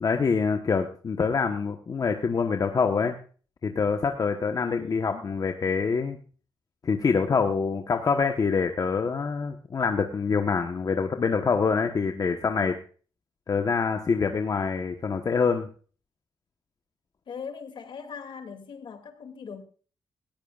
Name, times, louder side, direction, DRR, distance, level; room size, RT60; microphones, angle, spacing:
voice 1, 0.0-3.2 3.6-6.2 6.8-12.8 13.5-15.7, left 5 dB, 45° left, 6 dB, 1.2 m, -25 dB
voice 2, 4.6-5.3 17.3-19.6, left 6 dB, 70° left, 7 dB, 2.6 m, -40 dB
18.0 x 15.0 x 2.5 m, 0.40 s
wide cardioid pair, 115°, 9 cm